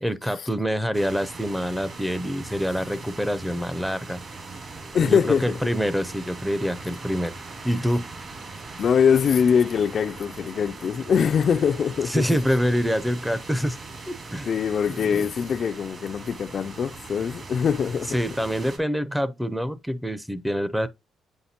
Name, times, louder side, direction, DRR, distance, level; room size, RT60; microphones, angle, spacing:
voice 1, 0.0-4.2 5.0-7.3 7.6-8.0 12.1-13.8 14.1-14.5 14.9-15.3 18.1-20.9, equal, 5° right, 0.5 m, -26 dB
sound 1, 0.9-18.8, right 3 dB, 45° right, 2.5 m, -40 dB
voice 2, 4.9-5.6 8.8-12.2 14.5-18.2, left 7 dB, 55° left, 0.3 m, -23 dB
7.9 x 5.6 x 2.8 m
cardioid pair, 90°, 0 cm